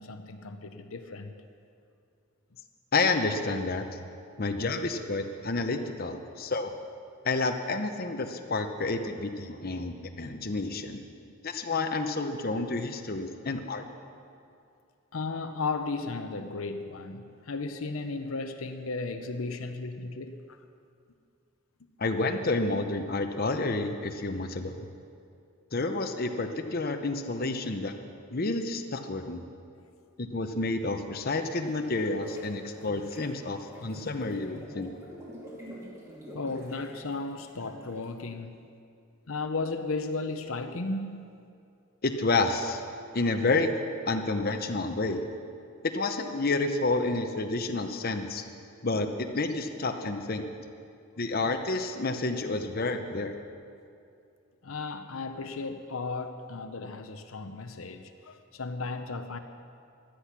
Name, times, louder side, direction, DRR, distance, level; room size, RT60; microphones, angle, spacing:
voice 1, 0.0-1.3 4.3-4.4 15.1-20.6 27.5-27.6 36.3-38.7 39.3-41.4 42.9-43.0 54.6-59.4, left 3 dB, 75° left, 7 dB, 0.8 m, -35 dB
voice 2, 2.9-3.9 4.4-6.8 7.2-11.0 11.4-13.9 22.0-24.9 25.7-27.9 28.3-29.4 30.2-35.0 42.0-42.8 43.1-43.7 44.1-45.2 45.8-48.4 48.8-50.4 51.2-53.3, left 3 dB, 45° left, 6 dB, 0.8 m, -29 dB
sound 1, 31.4-38.2, equal, 15° right, 2.9 m, -47 dB
16.5 x 12.0 x 6.0 m, 2.4 s
head